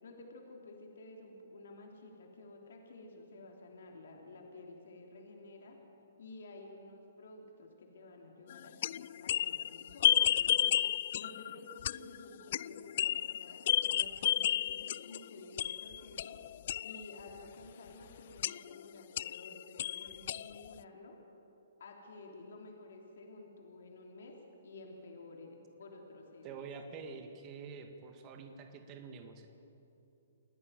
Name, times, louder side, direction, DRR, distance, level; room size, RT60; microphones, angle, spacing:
voice 1, 0.0-5.8 6.2-10.7 11.1-16.4 16.8-21.2 21.8-24.4 24.6-27.0, left 2 dB, 70° left, 1 dB, 3.3 m, -52 dB
sound 1, 8.5-15.2 15.6-17.2 18.4-18.8 19.2-20.8, left 11 dB, 55° left, 0.4 m, -32 dB
voice 2, 26.4-29.5, right 5 dB, 30° right, 5 dB, 1.9 m, -47 dB
28.5 x 11.0 x 9.3 m, 2.9 s
hypercardioid pair, 140°, 0 cm